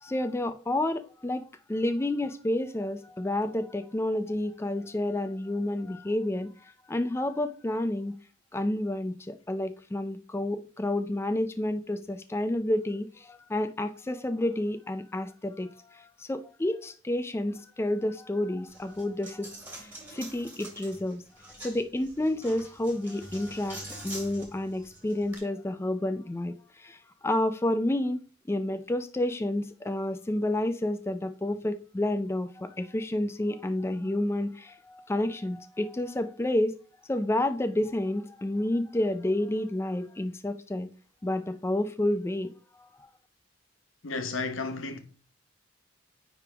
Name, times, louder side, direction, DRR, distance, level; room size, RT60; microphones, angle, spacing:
voice 1, 0.0-6.5 6.9-8.1 8.5-19.5 19.8-21.2 21.6-26.5 26.8-27.0 27.2-28.2 28.5-36.8 37.1-40.9 41.2-42.5 42.8-42.9, left 1 dB, 15° left, 0.4 m, -30 dB
Coin (dropping), 18.7-25.4, right 1 dB, 10° right, 1.9 m, -45 dB
voice 2, 44.0-45.0, left 3 dB, 90° left, 1.0 m, -32 dB
9.7 x 3.4 x 3.4 m
head